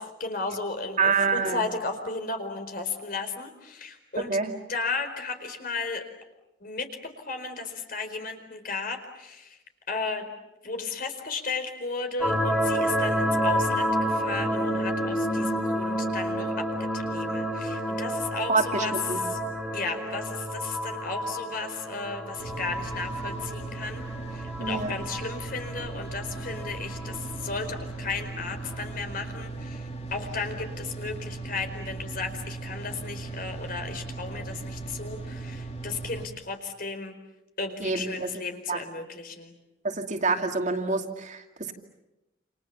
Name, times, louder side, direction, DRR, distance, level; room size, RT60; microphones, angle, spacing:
voice 1, 0.0-4.4 4.7-6.1 6.6-9.6 9.9-10.3 10.6-16.7 16.9-18.9 19.3-19.4 19.7-24.0 24.3-37.1 37.6-39.5, left 4 dB, 55° left, 6 dB, 4.6 m, -34 dB
voice 2, 1.0-1.6 4.3-4.5 18.5-19.2 24.6-24.9 37.8-38.3 38.7-38.8 39.8-41.7, right 4 dB, 45° right, 4 dB, 2.5 m, -27 dB
sound 1, 12.2-28.8, equal, ahead, 4.0 m, -30 dB
sound 2, 22.4-36.3, right 3 dB, 35° left, 2.6 m, -38 dB
29.0 x 28.5 x 7.0 m, 0.95 s
head